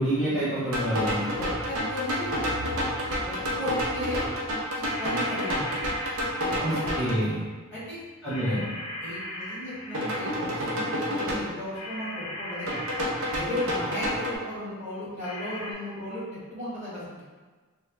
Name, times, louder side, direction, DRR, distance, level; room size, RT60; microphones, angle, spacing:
voice 1, 0.0-1.2 6.6-7.4 8.2-8.6, right 1 dB, 5° right, -13 dB, 1.1 m, -27 dB
sound 1, 0.7-7.2 9.9-11.3 12.7-14.3, equal, 65° right, 0.7 m, -29 dB
voice 2, 1.2-2.4 3.2-4.2 4.7-5.7 6.4-7.0 7.7-8.0 8.4-8.6 9.0-12.8 13.3-17.2, left 1 dB, 35° right, -11 dB, 1.4 m, -35 dB
sound 2, 1.3-8.5 9.0-10.2 10.7-10.8 11.2-11.3 11.6-11.7 12.0-12.1 12.4-12.6 12.9-14.0, left 1 dB, 35° left, 0.3 m, -45 dB
sound 3, 4.8-7.2 8.3-10.7 11.7-14.2 15.2-15.7, left 1 dB, 85° left, 0.8 m, -39 dB
3.5 x 2.1 x 3.4 m, 1.4 s
head